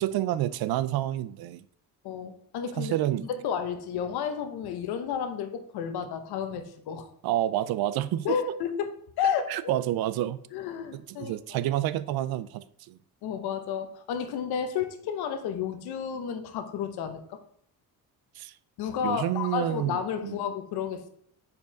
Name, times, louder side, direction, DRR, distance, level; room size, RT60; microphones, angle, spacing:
voice 1, 0.0-1.6 2.8-3.3 7.2-8.3 9.5-10.4 10.9-13.0 18.4-18.5 19.0-20.4, right 13 dB, 75° right, 0.5 m, -29 dB
voice 2, 2.0-2.9 3.2-7.1 8.2-8.9 9.2-9.5 10.5-11.6 13.2-17.4 18.8-21.1, left 7 dB, 90° left, 0.9 m, -31 dB
5.3 x 4.6 x 5.2 m
cardioid pair, 110°, 37 cm